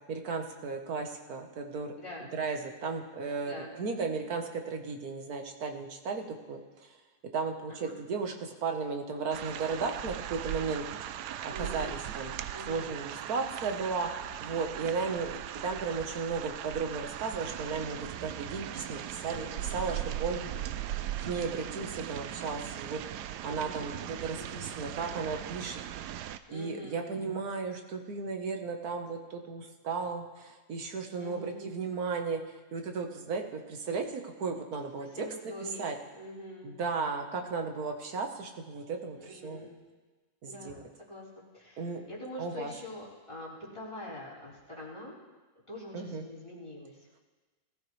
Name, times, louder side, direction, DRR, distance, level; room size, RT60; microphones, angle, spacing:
voice 1, 0.1-2.0 2.3-6.9 7.3-10.8 11.4-12.3 12.7-14.1 14.4-15.4 15.6-20.4 21.2-23.0 23.4-25.8 26.5-32.4 32.7-35.1 35.6-35.9 36.6-39.7 40.4-40.8 41.8-42.0 42.4-42.7 45.9-46.2, right 4 dB, 65° right, 4 dB, 1.7 m, -35 dB
voice 2, 2.0-2.3 3.4-3.9 7.7-7.9 11.5-12.1 12.5-13.0 19.3-19.4 19.9-20.8 23.4-24.7 26.5-27.2 31.2-31.7 35.0-35.8 36.1-36.7 39.1-39.8 40.5-45.2 45.7-47.2, left 1 dB, 15° left, -8 dB, 4.2 m, -45 dB
sound 1, 9.3-26.4, right 12 dB, 90° right, 1.2 m, -39 dB
20.5 x 14.0 x 3.2 m, 1.3 s
omnidirectional pair, 1.7 m